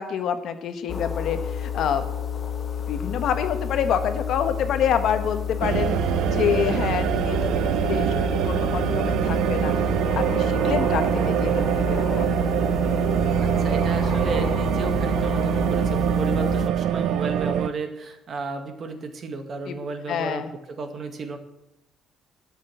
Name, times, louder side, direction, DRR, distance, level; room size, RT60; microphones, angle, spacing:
voice 1, 0.0-2.0 2.9-6.0 6.3-7.5 7.8-9.7 10.1-12.4 19.7-19.8 20.1-20.5, left 8 dB, 55° left, 9 dB, 1.2 m, -27 dB
sound 1, 0.9-16.7, left 8 dB, 30° left, 0.8 m, -30 dB
sound 2, 5.6-17.7, right 11 dB, 65° right, 0.5 m, -24 dB
voice 2, 13.4-20.4 20.7-21.4, right 3 dB, 35° right, 7 dB, 1.7 m, -33 dB
12.0 x 7.3 x 9.0 m, 0.89 s
cardioid pair, 160°, 0 cm